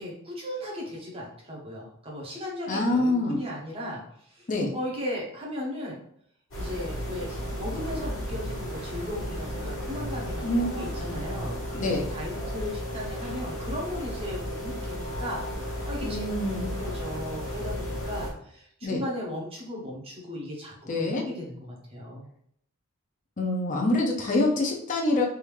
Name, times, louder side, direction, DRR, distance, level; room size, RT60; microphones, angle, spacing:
voice 1, 0.0-4.0 4.3-4.5 4.7-6.0 6.6-16.2 16.8-20.7 21.0-22.3, left 1 dB, 25° right, -3 dB, 0.9 m, -36 dB
voice 2, 2.7-3.4 4.5-4.7 10.4-10.7 11.0-11.2 11.7-12.1 16.0-16.7 18.8-19.0 20.9-21.2 23.4-25.2, left 2 dB, 35° left, 0 dB, 0.6 m, -26 dB
sound 1, 6.5-18.3, equal, 60° left, 1.0 m, -34 dB
3.5 x 2.6 x 3.1 m, 0.68 s
head